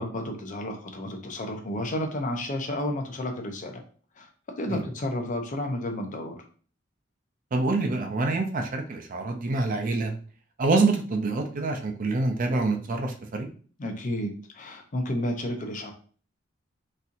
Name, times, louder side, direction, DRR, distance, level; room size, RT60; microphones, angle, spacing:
voice 1, 0.0-3.8 4.2-6.4 13.8-14.3 14.5-15.9, left 1 dB, 40° left, 4 dB, 0.6 m, -31 dB
voice 2, 7.5-10.1 10.6-13.5, right 3 dB, 45° right, 4 dB, 0.5 m, -26 dB
4.2 x 2.6 x 2.5 m, 0.42 s
head